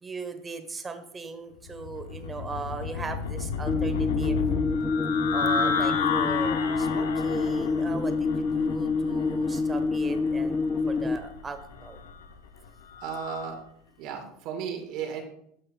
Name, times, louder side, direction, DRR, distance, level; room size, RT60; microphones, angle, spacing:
voice 1, 0.0-4.4 5.3-10.6 10.9-12.0, right 4 dB, 20° right, 8 dB, 1.2 m, -38 dB
sound 1, 1.7-13.5, left 5 dB, 85° left, 0.7 m, -32 dB
sound 2, 3.7-11.2, left 4 dB, 20° left, 0.4 m, -27 dB
voice 2, 13.0-13.6 14.0-15.2, right 7 dB, 60° right, 2 dB, 1.6 m, -34 dB
12.5 x 5.5 x 2.3 m, 0.70 s
hypercardioid pair, 90°, 0 cm